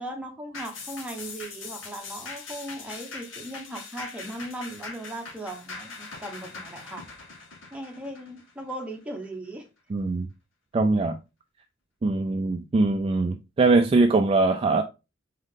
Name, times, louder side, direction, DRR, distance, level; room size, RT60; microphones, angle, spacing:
voice 1, 0.0-7.1 7.7-9.7, right 1 dB, 5° right, 0.9 m, -38 dB
sound 1, 0.5-9.3 9.7-9.8, left 4 dB, 70° left, 1.2 m, -41 dB
voice 2, 9.9-10.3 10.7-11.2 12.0-14.8, right 3 dB, 30° right, 0.3 m, -22 dB
3.7 x 3.6 x 3.6 m
head